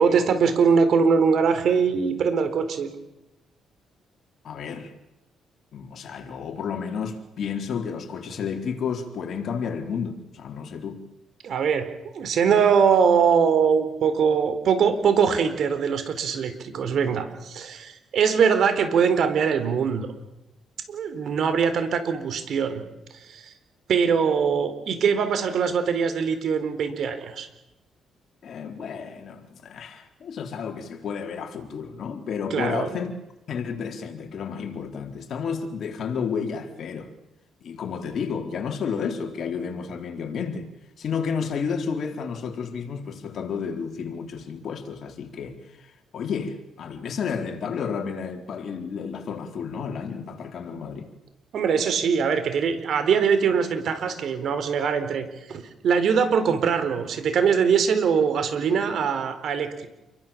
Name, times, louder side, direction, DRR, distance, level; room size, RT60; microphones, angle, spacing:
voice 1, 0.0-2.9 11.4-11.9 12.1-20.1 20.9-22.8 23.2-23.5 23.9-27.5 32.5-33.0 51.5-59.9, right 6 dB, 65° right, 4.1 m, -22 dB
voice 2, 4.4-4.9 5.7-11.1 28.4-33.1 33.5-37.1 37.6-40.7 41.0-51.1, left 6 dB, 60° left, 4.2 m, -31 dB
29.0 x 23.0 x 7.5 m
cardioid pair, 90°, 0 cm